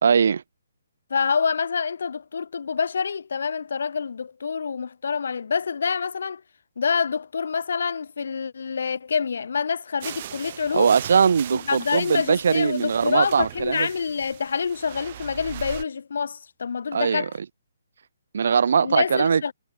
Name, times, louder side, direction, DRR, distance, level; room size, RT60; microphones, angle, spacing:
voice 1, 0.0-0.4 10.7-13.9 16.9-17.3 18.3-19.4, right 6 dB, 65° right, 2.2 m, -21 dB
voice 2, 1.1-6.4 6.8-11.0 11.5-17.3 18.8-19.5, left 6 dB, 70° left, 1.9 m, -27 dB
sound 1, 10.0-15.8, right 11 dB, 40° right, 2.0 m, -39 dB
hypercardioid pair, 160°, 0 cm